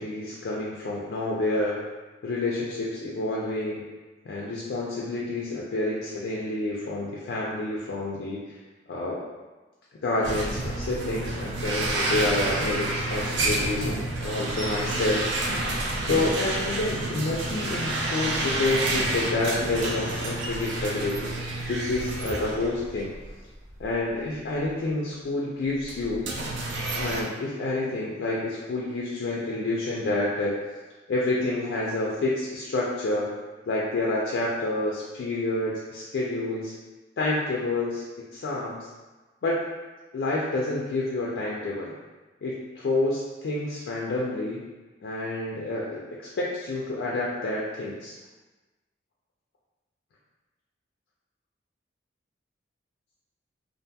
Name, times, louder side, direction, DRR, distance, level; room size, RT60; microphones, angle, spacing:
voice 1, 0.0-1.8 2.2-3.8 4.3-8.6 8.9-9.2 10.0-15.3 16.0-21.3 21.7-23.1 23.8-26.3 27.0-30.6 31.1-33.3 33.7-36.7 37.2-38.0 38.3-38.9 39.4-39.6 40.1-41.9 42.4-44.7 45.0-48.1, left 2 dB, 65° left, -5 dB, 0.3 m, -28 dB
sound 1, 10.2-23.3 23.7-23.8 24.6-24.7 25.8-27.2, right 2 dB, 80° right, 0.4 m, -29 dB
2.6 x 2.5 x 2.2 m, 1.2 s
head